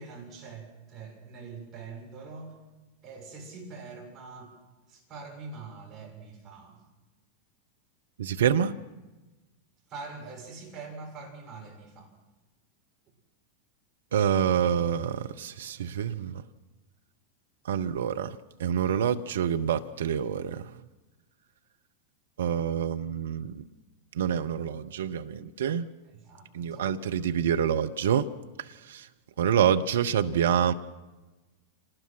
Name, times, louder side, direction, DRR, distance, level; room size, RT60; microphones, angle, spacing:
voice 1, 0.0-2.6 3.0-4.5 4.9-6.8 9.9-12.1 26.2-27.0, right 4 dB, 25° right, 7.1 m, -44 dB
voice 2, 8.2-8.7 14.1-16.4 17.6-20.7 22.4-23.6 24.1-25.9 26.5-28.3 28.6-29.1 29.4-30.7, right 8 dB, 60° right, 0.8 m, -27 dB
26.5 x 19.5 x 6.2 m
figure-of-eight pair, 90°, 0 cm